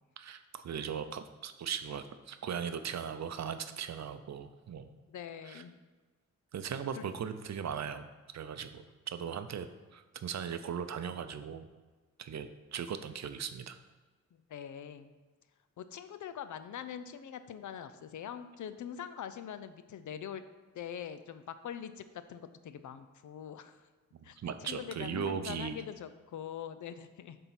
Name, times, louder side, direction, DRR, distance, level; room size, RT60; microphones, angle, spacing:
voice 1, 0.2-4.9 5.4-5.6 6.5-8.1 8.3-11.7 12.2-13.8 24.1-25.8, right 7 dB, 60° right, 9 dB, 0.6 m, -38 dB
voice 2, 5.1-5.8 7.0-7.1 14.5-15.1 15.8-20.4 20.7-23.8 24.2-27.4, left 9 dB, 75° left, 11 dB, 0.5 m, -43 dB
6.8 x 3.7 x 5.8 m, 1.3 s
cardioid pair, 80°, 31 cm